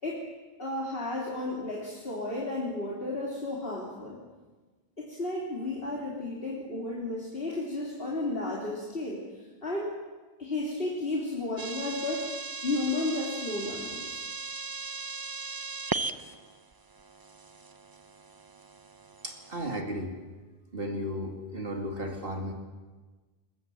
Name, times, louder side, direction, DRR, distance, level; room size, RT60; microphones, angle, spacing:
voice 1, 0.6-4.2 5.0-9.2 9.6-9.9 10.4-14.2, left 2 dB, 60° left, -4 dB, 3.6 m, -33 dB
sound 1, 11.6-19.8, right 4 dB, 25° right, 0.6 m, -38 dB
voice 2, 19.2-20.2 20.7-22.5, equal, 60° right, 3 dB, 2.5 m, -34 dB
21.0 x 21.0 x 7.8 m, 1.3 s
omnidirectional pair, 1.1 m